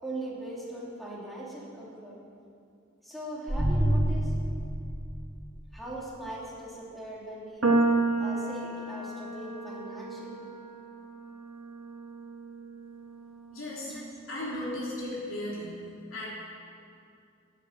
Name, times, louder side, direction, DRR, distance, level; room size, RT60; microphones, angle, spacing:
voice 1, 0.0-2.2 3.0-4.3 5.7-7.7 8.2-10.5 13.9-14.1, right 1 dB, ahead, -6 dB, 2.8 m, -40 dB
sound 1, 3.5-5.7, equal, 60° right, 2.3 m, -28 dB
sound 2, 7.6-14.0, right 2 dB, 85° right, 1.4 m, -31 dB
voice 2, 13.5-13.9 14.3-15.7 16.1-16.3, left 1 dB, 90° left, -6 dB, 3.5 m, -35 dB
13.5 x 8.5 x 8.8 m, 2.5 s
head